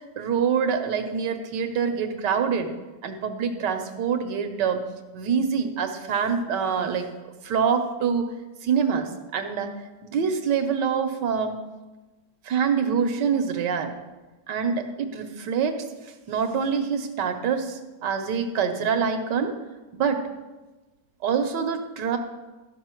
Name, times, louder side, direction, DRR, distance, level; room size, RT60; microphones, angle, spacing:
voice 1, 0.2-2.7 3.0-4.8 5.1-7.1 7.4-8.3 8.6-9.7 10.0-11.6 12.4-14.0 14.5-15.8 16.3-19.5 19.9-20.3 21.2-22.2, right 6 dB, 85° right, 7 dB, 1.5 m, -25 dB
13.0 x 5.5 x 4.5 m, 1.2 s
omnidirectional pair, 1.8 m